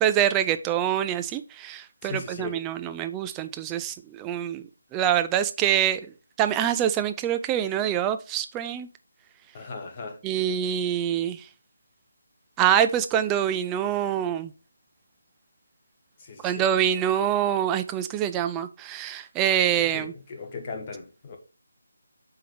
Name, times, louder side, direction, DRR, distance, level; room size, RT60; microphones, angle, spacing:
voice 1, 0.0-4.6 4.9-6.0 6.4-8.9 10.2-11.4 12.6-14.5 16.4-20.1, right 10 dB, 10° right, 0.4 m, -25 dB
voice 2, 2.0-2.6 9.5-10.2 16.2-16.7 19.8-21.4, left 4 dB, 25° left, 1.3 m, -38 dB
7.4 x 3.8 x 5.2 m
figure-of-eight pair, 155°, 0 cm